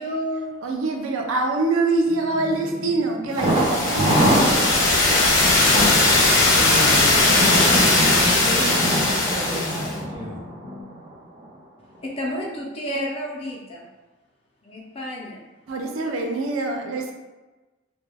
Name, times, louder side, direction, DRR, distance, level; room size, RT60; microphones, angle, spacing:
voice 1, 0.0-0.5 12.0-13.8 14.6-15.4, equal, 30° left, -4 dB, 0.4 m, -30 dB
voice 2, 0.6-4.7 5.0-5.2 15.7-17.1, right 3 dB, 90° right, 2 dB, 0.4 m, -25 dB
sound 1, 2.1-10.8, left 1 dB, 55° right, 1.1 m, -40 dB
sound 2, 3.4-9.9, left 2 dB, 75° left, 0.7 m, -19 dB
Thunder, 3.4-11.1 11.4-11.5 11.9-12.0, right 1 dB, 25° right, 0.5 m, -25 dB
voice 3, 6.5-10.5, left 1 dB, 10° right, -9 dB, 0.9 m, -31 dB
2.1 x 2.1 x 3.3 m, 1.2 s
head